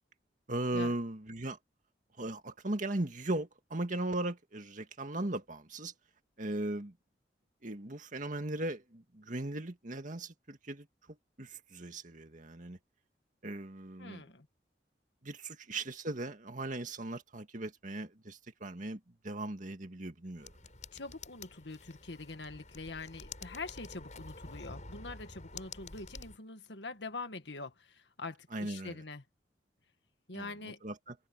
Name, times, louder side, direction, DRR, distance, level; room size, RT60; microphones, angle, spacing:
voice 1, 0.5-1.6 2.2-5.9 6.4-7.0 7.6-10.9 11.4-12.8 13.4-14.2 15.2-20.5 28.5-29.0 30.3-30.5 30.8-31.2, right 2 dB, 45° right, 2.0 m, -38 dB
voice 2, 14.0-14.5 20.9-29.2 30.3-30.8, left 3 dB, 80° left, 1.8 m, -44 dB
sound 1, 20.4-26.4, left 3 dB, 45° left, 7.2 m, -49 dB
head